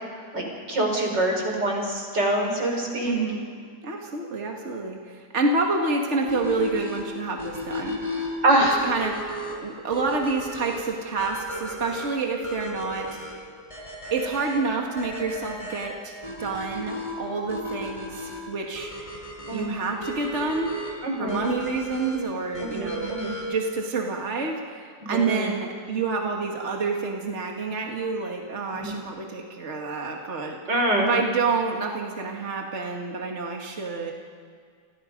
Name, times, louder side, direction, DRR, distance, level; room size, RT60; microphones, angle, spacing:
voice 1, 0.3-3.2 8.4-8.8 19.5-19.7 21.0-21.4 22.6-23.3 25.0-25.5 28.7-29.0 30.7-31.1, right 1 dB, 85° right, 1 dB, 5.8 m, -25 dB
voice 2, 3.0-3.5 3.8-8.0 8.8-9.3 9.6-13.2 14.1-18.9 19.5-20.8 21.2-30.6 31.0-34.1, right 4 dB, 40° right, 1 dB, 2.3 m, -28 dB
sound 1, 6.3-23.7, left 1 dB, 15° left, 5.1 m, -35 dB
30.0 x 26.0 x 5.4 m, 2.1 s
omnidirectional pair, 1.9 m